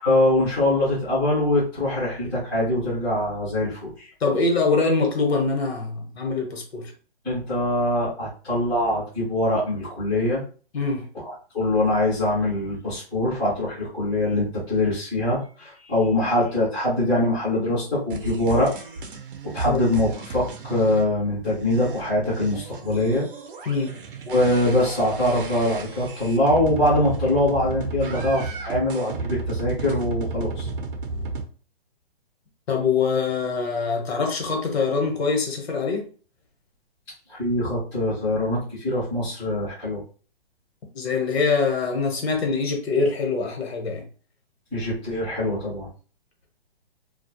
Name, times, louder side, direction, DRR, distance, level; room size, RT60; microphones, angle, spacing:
voice 1, 0.0-4.1 7.2-10.4 11.2-18.9 19.4-23.3 24.3-30.7 37.3-40.0 44.7-45.9, left 1 dB, 5° left, 0.4 m, -23 dB
voice 2, 4.2-6.9 10.7-11.1 19.7-19.8 23.6-24.0 32.7-36.1 40.9-44.0, left 4 dB, 75° left, 1.0 m, -24 dB
sound 1, 18.1-21.0 21.4-31.4, right 3 dB, 55° right, 0.6 m, -33 dB
2.3 x 2.0 x 2.8 m
hypercardioid pair, 160°, 31 cm